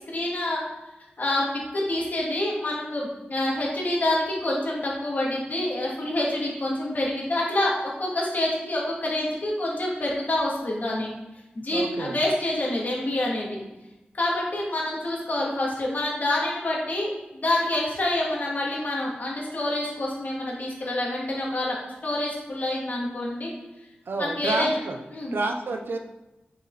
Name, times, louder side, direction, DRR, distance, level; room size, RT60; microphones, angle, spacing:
voice 1, 0.1-0.6 1.2-1.4 1.7-7.7 8.0-11.1 11.5-13.6 14.1-23.5 24.2-24.8 25.1-25.4, left 1 dB, 55° left, -4 dB, 3.0 m, -27 dB
voice 2, 11.7-12.2 24.1-25.0 25.3-26.0, right 3 dB, 85° right, 4 dB, 0.9 m, -29 dB
8.6 x 6.8 x 4.3 m, 1.0 s
wide cardioid pair, 105°, 4 cm